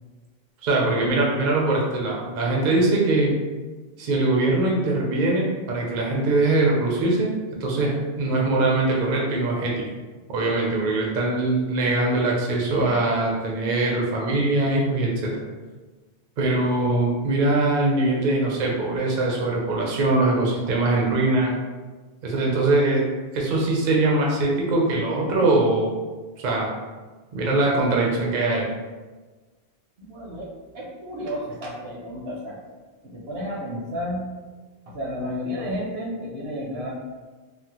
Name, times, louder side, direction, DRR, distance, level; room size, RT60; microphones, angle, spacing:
voice 1, 0.6-3.3 4.0-7.3 7.6-9.8 10.3-15.5 16.4-21.5 22.2-23.0 23.3-25.9 26.4-26.7 27.3-28.7, right 2 dB, 55° right, -2 dB, 0.6 m, -22 dB
voice 2, 30.0-30.5 30.7-32.6 33.0-34.3 34.9-36.9, equal, 70° right, -2 dB, 0.9 m, -32 dB
3.4 x 2.0 x 2.9 m, 1.3 s
omnidirectional pair, 1.1 m